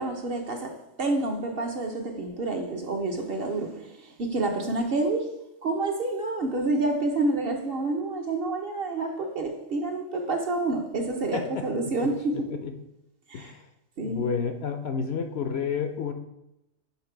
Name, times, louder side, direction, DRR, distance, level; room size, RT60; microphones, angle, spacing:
voice 1, 0.0-5.3 5.6-12.5 13.3-13.5 14.0-14.2, right 2 dB, 55° right, 3 dB, 0.8 m, -28 dB
voice 2, 11.3-11.7 12.5-12.7 13.3-13.7 14.0-16.1, left 6 dB, 65° left, 6 dB, 0.7 m, -30 dB
5.8 x 4.2 x 4.4 m, 0.87 s
omnidirectional pair, 1.4 m